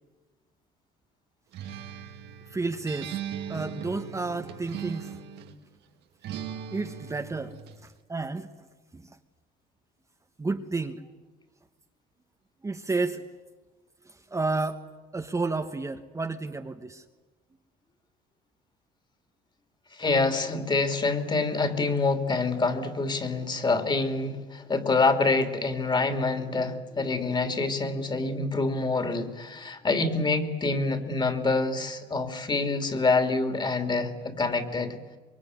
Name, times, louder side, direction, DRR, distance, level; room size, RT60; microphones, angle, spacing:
Acoustic guitar, 1.5-5.6 6.2-7.8, right 8 dB, 80° right, 2.2 m, -39 dB
voice 1, 2.5-3.2 3.5-5.2 6.7-7.6 8.1-8.5 8.9-9.1 10.4-11.0 12.6-13.2 14.3-14.8 15.1-17.0, right 3 dB, 20° right, 5 dB, 1.4 m, -31 dB
voice 2, 19.9-34.9, left 3 dB, 25° left, 8 dB, 3.1 m, -26 dB
24.5 x 22.5 x 9.7 m, 1.3 s
cardioid pair, 110°, 17 cm